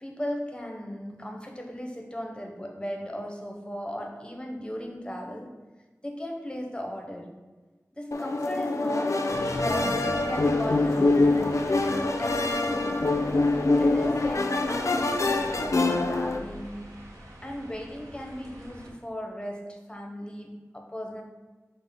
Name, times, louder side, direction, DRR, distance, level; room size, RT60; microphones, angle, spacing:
voice 1, 0.0-5.6 6.0-7.3 7.9-9.3 9.6-13.1 13.8-17.0 17.4-21.2, equal, 15° left, 1 dB, 0.6 m, -37 dB
sound 1, 8.1-16.4, left 2 dB, 60° left, 0.3 m, -25 dB
sound 2, 9.3-18.9, equal, 80° right, 0.7 m, -42 dB
5.2 x 2.0 x 3.4 m, 1.3 s
wide cardioid pair, 55°, 6 cm